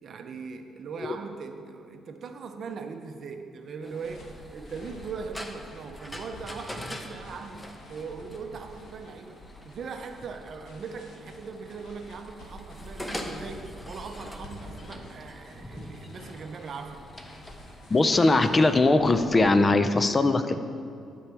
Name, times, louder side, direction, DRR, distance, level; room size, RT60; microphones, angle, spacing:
voice 1, 0.0-17.0, right 5 dB, 55° right, 7 dB, 0.7 m, -40 dB
sound 1, 3.8-18.7, left 1 dB, 10° left, 0.9 m, -44 dB
sound 2, 4.0-19.4, left 1 dB, 75° left, 1.4 m, -48 dB
voice 2, 17.9-20.6, left 2 dB, 25° left, 10 dB, 0.5 m, -21 dB
9.0 x 4.7 x 6.9 m, 2.6 s
cardioid pair, 90°, 0 cm